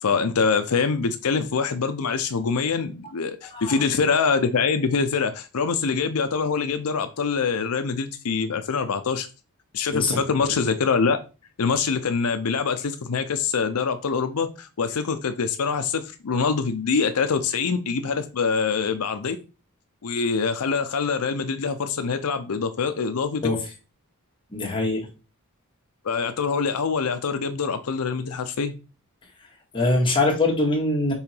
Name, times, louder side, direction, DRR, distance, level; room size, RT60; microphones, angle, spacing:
voice 1, 0.0-9.3 9.7-11.2 11.6-19.4 20.0-23.4 26.0-28.7, left 5 dB, 85° left, 9 dB, 0.6 m, -24 dB
voice 2, 3.4-3.8 9.9-10.6 23.4-23.6 24.5-25.0 29.7-31.1, left 2 dB, 25° left, -1 dB, 1.9 m, -23 dB
5.6 x 3.7 x 4.4 m, 0.32 s
head